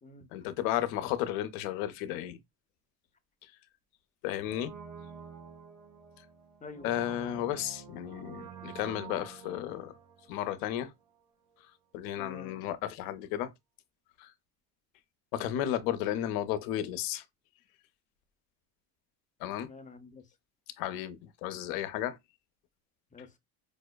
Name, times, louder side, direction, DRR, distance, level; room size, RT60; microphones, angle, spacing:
voice 1, 0.3-2.4 4.2-4.7 6.8-9.9 10.3-10.9 11.9-13.5 14.2-14.3 15.3-17.2 19.4-19.7 20.8-22.2, left 12 dB, 85° left, 0.7 m, -33 dB
Brass instrument, 4.4-11.2 11.5-11.6, right 7 dB, 50° right, 1.5 m, -49 dB
voice 2, 6.6-7.0 12.2-12.7 19.6-20.3 23.1-23.4, left 3 dB, 20° left, 0.7 m, -48 dB
5.1 x 2.1 x 2.2 m
supercardioid pair, 95°, 41 cm